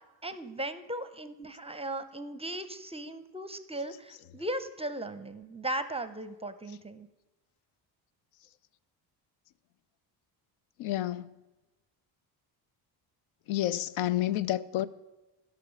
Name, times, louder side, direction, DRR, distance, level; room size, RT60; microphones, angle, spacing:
voice 1, 0.2-7.1, right 1 dB, 15° right, 0.5 m, -37 dB
voice 2, 10.8-11.3 13.5-14.9, left 13 dB, 80° left, 0.6 m, -29 dB
12.0 x 5.8 x 6.2 m
cardioid pair, 105°, 47 cm